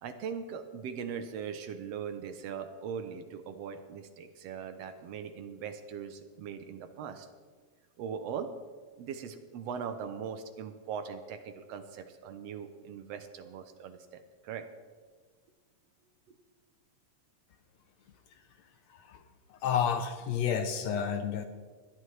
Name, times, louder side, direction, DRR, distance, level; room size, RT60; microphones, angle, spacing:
voice 1, 0.0-7.3 8.0-8.5 9.0-14.7 16.3-16.4, right 7 dB, 70° right, 8 dB, 1.6 m, -40 dB
voice 2, 19.5-21.4, left 7 dB, 75° left, 8 dB, 1.7 m, -30 dB
20.0 x 11.5 x 3.2 m, 1.5 s
omnidirectional pair, 3.6 m